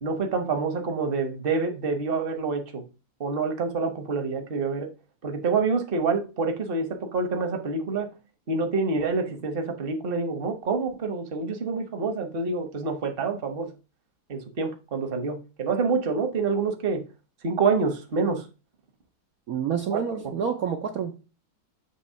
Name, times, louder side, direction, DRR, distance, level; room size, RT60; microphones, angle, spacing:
voice 1, 0.0-2.8 3.2-4.9 5.2-8.1 8.5-13.7 14.3-17.0 17.4-18.4 19.9-20.0, right 4 dB, 40° right, 0.8 m, -27 dB
voice 2, 19.5-21.3, right 7 dB, 80° right, 0.8 m, -28 dB
8.0 x 3.0 x 5.5 m
omnidirectional pair, 2.4 m